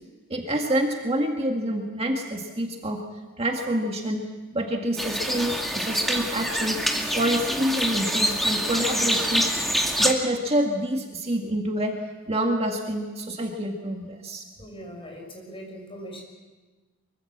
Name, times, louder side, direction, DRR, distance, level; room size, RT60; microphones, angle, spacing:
voice 1, 0.3-3.0 3.4-4.2 4.5-6.8 7.1-9.5 10.0-11.9 12.3-14.4, right 1 dB, 30° right, 2 dB, 1.9 m, -27 dB
sound 1, 5.0-10.1, equal, ahead, 2.3 m, -25 dB
voice 2, 14.6-16.2, equal, 25° left, 2 dB, 6.3 m, -40 dB
24.0 x 24.0 x 7.4 m, 1.3 s
head